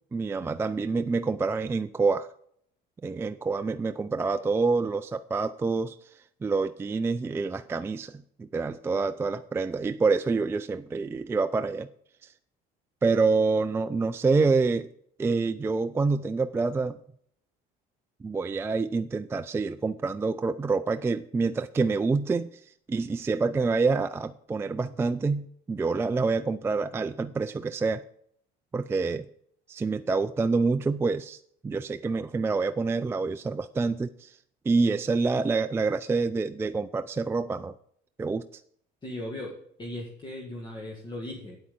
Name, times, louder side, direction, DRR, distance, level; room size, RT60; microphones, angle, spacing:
voice 1, 0.1-2.3 3.0-11.9 12.2-12.3 13.0-14.9 15.2-17.0 18.2-28.0 28.7-29.3 29.7-34.4 34.7-37.7 38.2-38.6, right 4 dB, 15° right, 9 dB, 0.3 m, -27 dB
voice 2, 39.0-41.6, left 1 dB, 25° left, 0 dB, 1.8 m, -38 dB
8.8 x 8.4 x 5.2 m, 0.66 s
cardioid pair, 115°, 18 cm